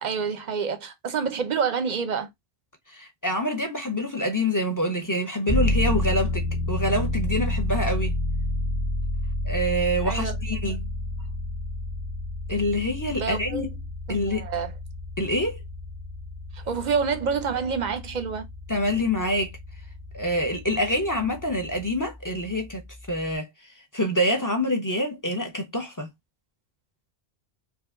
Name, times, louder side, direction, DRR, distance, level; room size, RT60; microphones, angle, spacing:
voice 1, 0.0-2.3 10.0-10.4 13.2-13.7 14.1-14.7 16.5-18.5, right 6 dB, 50° right, 0.6 m, -28 dB
voice 2, 2.9-8.2 9.4-10.9 12.5-13.7 14.1-14.4 15.2-15.6 18.7-19.5 20.1-22.8 23.1-23.5 23.9-26.1, equal, 20° left, 0.6 m, -26 dB
sound 1, 5.5-21.8, left 2 dB, 50° left, 1.8 m, -30 dB
4.5 x 2.4 x 2.5 m
omnidirectional pair, 1.1 m